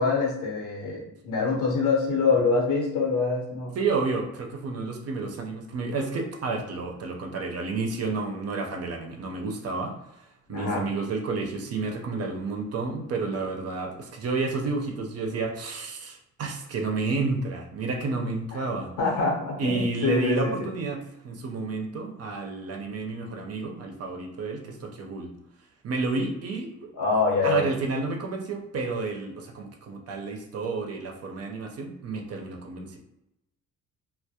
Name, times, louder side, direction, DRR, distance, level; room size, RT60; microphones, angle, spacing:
voice 1, 0.0-3.7 10.5-10.9 18.5-18.6 19.0-20.7 27.0-27.7, left 4 dB, 85° left, -1 dB, 0.9 m, -25 dB
voice 2, 3.7-18.9 19.6-25.3 25.8-26.9 27.4-33.0, right 3 dB, 55° right, 2 dB, 0.5 m, -30 dB
2.2 x 2.0 x 2.7 m, 0.87 s
cardioid pair, 90°, 30 cm